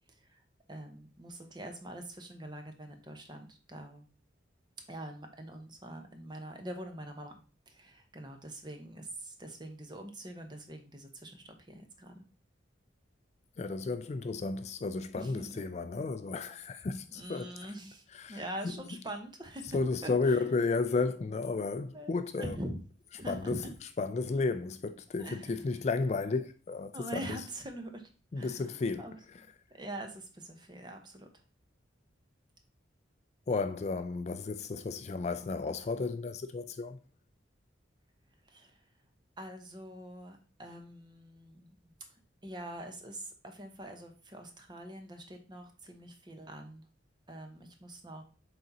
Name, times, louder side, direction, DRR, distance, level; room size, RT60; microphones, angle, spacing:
voice 1, 0.7-4.1 4.9-7.4 7.7-12.3 15.2-15.5 17.1-20.4 21.9-22.1 22.4-22.8 23.1-23.7 25.2-25.6 26.9-28.6 29.0-29.2 29.7-31.4 38.4-38.8 39.4-41.8 42.4-46.8 47.3-48.2, right 1 dB, 25° right, 0.9 m, -44 dB
voice 2, 13.6-17.7 18.1-18.4 19.7-22.6 23.3-23.6 24.0-27.0 27.2-27.4 28.3-29.1 29.3-29.4 33.5-37.0, left 3 dB, 35° left, 0.3 m, -33 dB
6.5 x 4.1 x 4.1 m
head